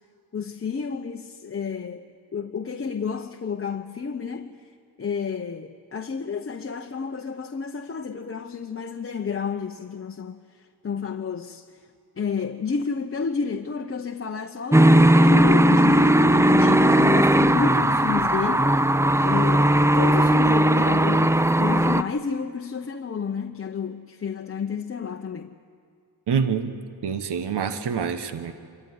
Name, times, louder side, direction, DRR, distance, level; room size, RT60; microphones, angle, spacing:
voice 1, 0.3-4.6 5.0-11.8 12.2-19.0 19.2-25.6, left 5 dB, 30° left, 0.9 m, -30 dB
sound 1, 14.7-22.0, right 1 dB, 5° right, 0.5 m, -18 dB
voice 2, 26.3-26.7 27.0-28.5, right 6 dB, 70° right, 1.3 m, -26 dB
25.5 x 14.0 x 9.8 m
cardioid pair, 70°, 42 cm